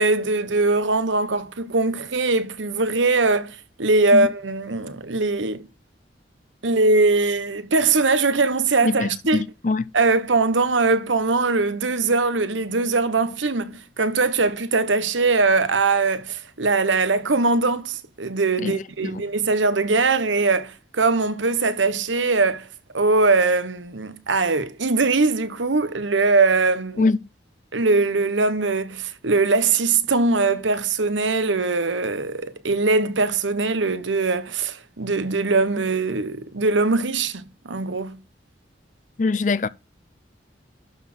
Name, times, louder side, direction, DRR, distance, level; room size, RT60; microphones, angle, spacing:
voice 1, 0.0-5.7 6.6-9.4 9.9-22.7 22.9-27.1 27.7-38.2, right 3 dB, 90° right, 1.1 m, -21 dB
voice 2, 8.8-9.9 18.6-19.3 27.0-27.2 39.2-39.7, left 3 dB, 40° left, 0.5 m, -23 dB
12.0 x 4.1 x 6.2 m
head